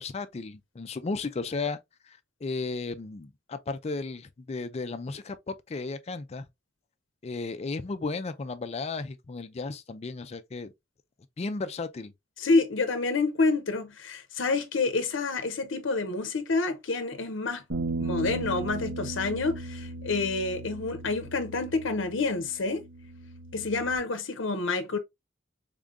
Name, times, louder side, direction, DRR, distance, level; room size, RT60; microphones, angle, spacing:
voice 1, 0.0-1.8 2.1-6.5 7.2-10.7 11.4-12.1, left 3 dB, 35° left, 0.4 m, -34 dB
voice 2, 12.4-17.6 18.0-22.8 23.5-25.0, left 3 dB, 70° left, 0.7 m, -28 dB
sound 1, 17.7-23.9, right 2 dB, 90° right, 1.2 m, -37 dB
3.7 x 3.7 x 2.4 m
head